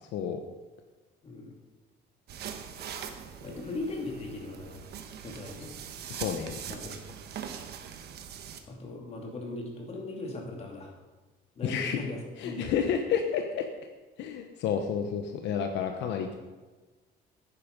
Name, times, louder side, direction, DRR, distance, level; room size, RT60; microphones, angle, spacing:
sound 1, 2.3-8.6, right 8 dB, 60° right, 1.2 m, -42 dB
voice 1, 3.4-4.8 5.2-5.7 6.6-7.0 8.7-10.9 11.5-12.7, left 2 dB, 35° left, 0 dB, 2.8 m, -38 dB
voice 2, 6.1-6.6 11.6-12.0 12.4-13.7 14.2-16.4, left 7 dB, 75° left, 5 dB, 1.0 m, -30 dB
11.5 x 9.7 x 5.3 m, 1.3 s
cardioid pair, 140°, 18 cm